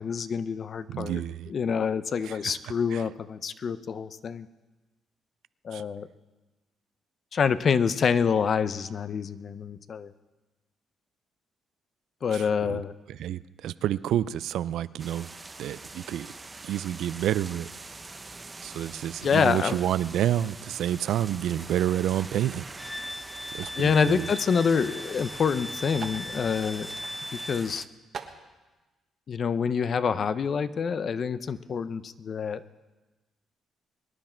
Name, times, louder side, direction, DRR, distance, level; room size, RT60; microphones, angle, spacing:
voice 1, 0.0-1.2 1.5-4.5 5.6-6.1 7.3-10.1 12.2-12.9 19.2-19.7 23.8-26.9 27.5-27.8 29.3-32.6, left 6 dB, 50° left, 14 dB, 0.6 m, -26 dB
voice 2, 0.9-1.5 2.2-2.6 2.9-3.1 5.7-5.8 12.3-12.8 13.1-15.3 15.6-16.3 16.6-17.7 18.6-22.7 23.5-24.3, right 11 dB, 80° right, 17 dB, 0.4 m, -29 dB
sound 1, 15.0-27.9, right 3 dB, 25° right, 0.7 m, -44 dB
Wind instrument woodwind instrument, 22.8-27.7, left 1 dB, 10° left, 0.4 m, -39 dB
sound 2, 23.6-23.9 24.8-24.9 25.2-25.3 25.9-26.2 27.0-27.1 27.6-27.7 28.1-28.4, right 6 dB, 50° right, 1.3 m, -41 dB
23.5 x 10.0 x 4.5 m, 1.2 s
cardioid pair, 90°, 0 cm